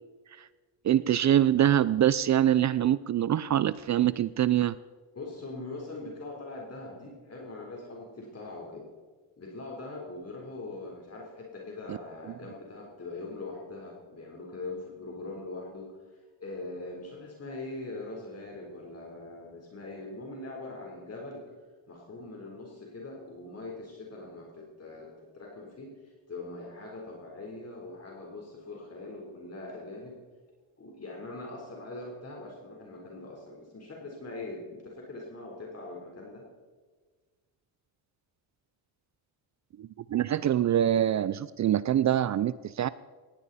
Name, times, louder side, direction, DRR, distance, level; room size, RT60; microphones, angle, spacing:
voice 1, 0.8-4.7 11.9-12.0 39.8-42.9, right 11 dB, 40° right, 17 dB, 0.4 m, -24 dB
voice 2, 5.1-8.9 9.4-21.5 21.9-30.2 30.8-36.4, left 2 dB, 35° left, -1 dB, 3.9 m, -42 dB
19.0 x 15.0 x 4.2 m, 1.4 s
cardioid pair, 105°, 45 cm